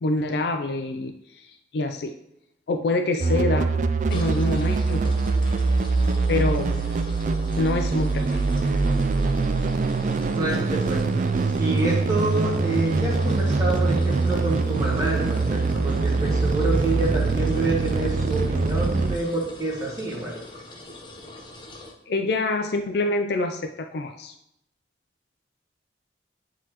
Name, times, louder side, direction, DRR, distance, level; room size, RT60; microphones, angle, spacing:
voice 1, 0.0-2.1 2.7-3.7 4.1-5.1 6.3-6.8 7.6-8.8 22.1-24.3, left 2 dB, 65° left, 5 dB, 0.4 m, -26 dB
sound 1, 3.2-19.2, right 3 dB, 45° right, 0.3 m, -23 dB
sound 2, 4.1-21.9, left 2 dB, 25° left, 0.7 m, -43 dB
voice 2, 10.3-20.4, right 2 dB, 20° right, -5 dB, 1.7 m, -27 dB
9.9 x 4.0 x 2.9 m, 0.81 s
head